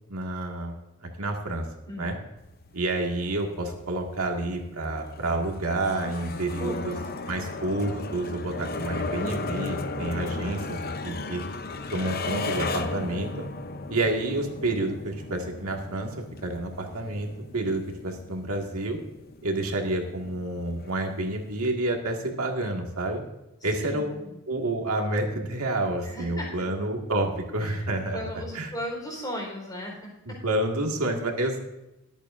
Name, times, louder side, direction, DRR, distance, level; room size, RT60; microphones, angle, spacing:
voice 1, 0.1-1.7 2.0-2.2 2.7-7.0 7.3-11.4 11.9-13.5 13.9-16.1 16.4-17.3 17.5-19.0 19.4-23.2 23.6-24.2 24.5-28.7 30.3-31.6, right 2 dB, 90° right, 2 dB, 1.9 m, -29 dB
sound 1, 2.4-21.7, left 3 dB, 45° left, 0.7 m, -36 dB
voice 2, 6.2-7.1 23.8-24.4 26.0-26.6 27.6-27.8 28.1-30.4, equal, 20° left, -1 dB, 4.2 m, -37 dB
22.5 x 8.3 x 2.6 m, 0.93 s
head